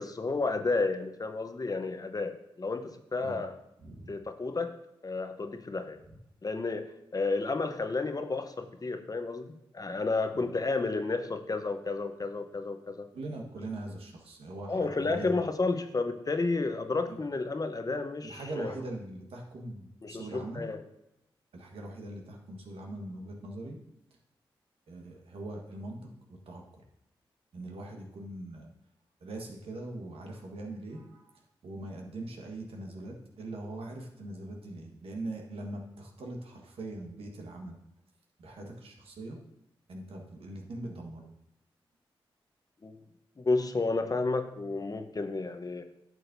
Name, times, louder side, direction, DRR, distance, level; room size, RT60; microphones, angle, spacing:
voice 1, 0.0-3.5 4.1-4.7 5.0-6.0 6.4-9.5 9.7-13.1 14.7-18.7 20.0-20.8 42.8-43.0 43.4-45.8, left 3 dB, 40° left, 7 dB, 0.9 m, -31 dB
voice 2, 3.8-4.1 6.1-6.2 10.3-10.4 13.1-15.4 17.1-17.2 18.2-20.7 21.5-23.8 24.9-26.9 27.5-28.7 29.2-37.8 38.4-39.4 39.9-41.3, right 2 dB, 75° right, 1 dB, 1.4 m, -41 dB
10.5 x 6.3 x 2.7 m, 0.84 s
supercardioid pair, 40°, 10 cm